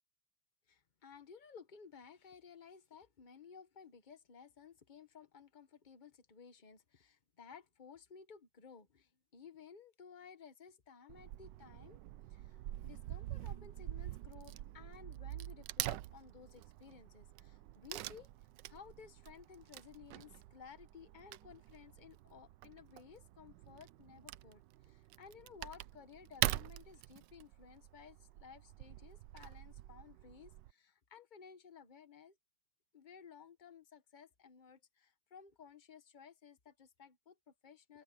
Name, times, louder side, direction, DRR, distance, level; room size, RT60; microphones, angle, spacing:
voice 1, 0.7-12.0 12.3-18.3 18.7-32.4 32.9-38.0, left 6 dB, 30° left, 1.0 m, -57 dB
Wood / Tearing, 11.1-30.7, right 15 dB, 70° right, 1.1 m, -45 dB
omnidirectional pair, 2.2 m